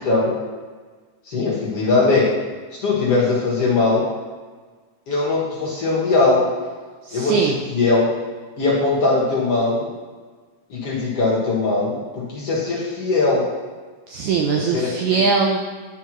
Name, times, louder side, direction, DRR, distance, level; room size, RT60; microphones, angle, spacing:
voice 1, 0.0-0.4 1.3-2.3 2.8-4.0 5.1-6.5 7.1-8.2 8.6-9.9 10.7-13.5 14.7-14.9, left 3 dB, 55° left, -6 dB, 2.1 m, -20 dB
voice 2, 7.0-7.6 14.1-15.6, right 5 dB, 80° right, 1 dB, 1.8 m, -20 dB
10.5 x 5.7 x 3.0 m, 1.4 s
omnidirectional pair, 4.0 m